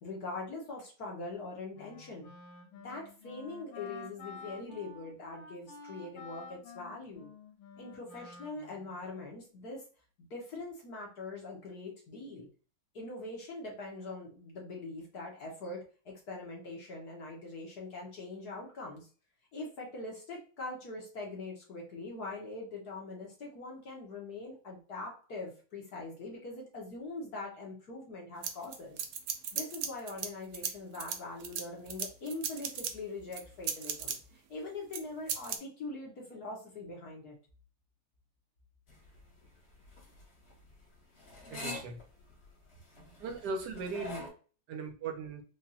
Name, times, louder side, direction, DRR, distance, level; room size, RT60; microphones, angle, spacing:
voice 1, 0.0-2.3 2.8-7.3 7.8-9.8 10.2-12.5 12.9-15.8 16.0-19.1 19.5-29.0 29.5-34.2 34.5-37.3, left 2 dB, 55° left, -1 dB, 1.4 m, -42 dB
Wind instrument woodwind instrument, 1.7-9.1, left 5 dB, 85° left, 1.7 m, -50 dB
sound 1, 28.4-30.3 30.5-32.9 33.3-34.2 34.9-35.0 35.3-35.6, right 7 dB, 90° right, 0.8 m, -36 dB
sound 2, 38.9-44.3, left 2 dB, 35° left, 1.3 m, -46 dB
voice 2, 41.5-42.0 43.2-44.3 44.7-45.4, right 4 dB, 65° right, 5 dB, 1.1 m, -38 dB
5.0 x 2.5 x 2.7 m, 0.37 s
omnidirectional pair, 2.3 m